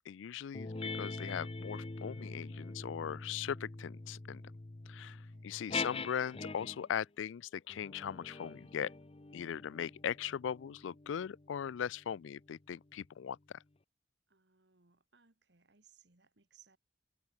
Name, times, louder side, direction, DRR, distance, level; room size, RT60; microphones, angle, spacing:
voice 1, 0.1-4.4 4.9-8.9 9.3-13.4, left 8 dB, 85° left, 0.4 m, -39 dB
sound 1, 0.5-6.9 7.7-12.6, left 3 dB, 30° left, 0.7 m, -44 dB
voice 2, 5.1-5.7 14.3-16.8, right 7 dB, 60° right, 2.0 m, -67 dB
head